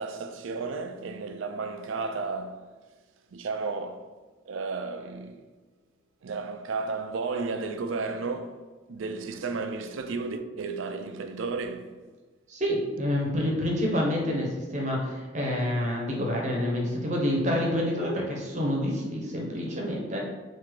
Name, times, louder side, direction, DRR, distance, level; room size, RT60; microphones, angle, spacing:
voice 1, 0.0-2.7 3.3-4.1 4.5-5.5 6.2-8.6 8.9-12.0, right 4 dB, 80° right, 0.4 m, -33 dB
voice 2, 12.5-20.2, left 1 dB, 35° right, 0.8 m, -28 dB
3.7 x 2.7 x 4.6 m
head